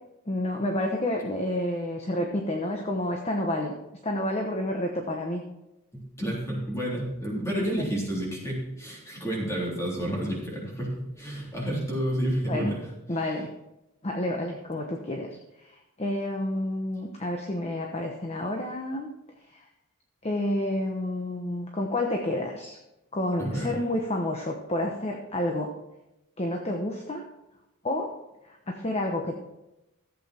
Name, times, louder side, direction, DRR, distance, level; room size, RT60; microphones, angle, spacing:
voice 1, 0.3-3.8 4.0-5.4 7.6-7.9 12.5-12.8 13.1-13.5 14.0-15.3 15.6-15.7 16.0-19.1 20.2-22.8 23.1-25.7 26.4-27.2 27.8-28.1 28.4-29.4, left 1 dB, 30° left, 2 dB, 1.0 m, -29 dB
voice 2, 5.9-12.8 23.4-23.8, equal, 15° left, -4 dB, 3.6 m, -30 dB
14.0 x 8.3 x 4.4 m, 0.93 s
head